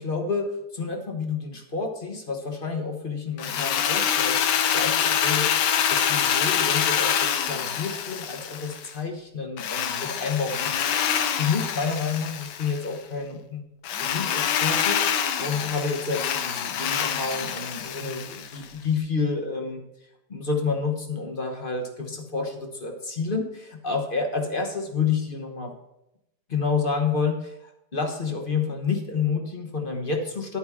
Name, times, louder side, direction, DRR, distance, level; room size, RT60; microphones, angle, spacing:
voice 1, 0.0-4.5 4.7-13.6 14.0-25.7 26.5-30.6, left 5 dB, 35° left, 3 dB, 1.1 m, -29 dB
Drill, 3.4-8.9 9.6-12.9 13.8-18.6, left 8 dB, 75° left, 1.4 m, -26 dB
10.5 x 9.0 x 3.6 m, 0.85 s
omnidirectional pair, 1.9 m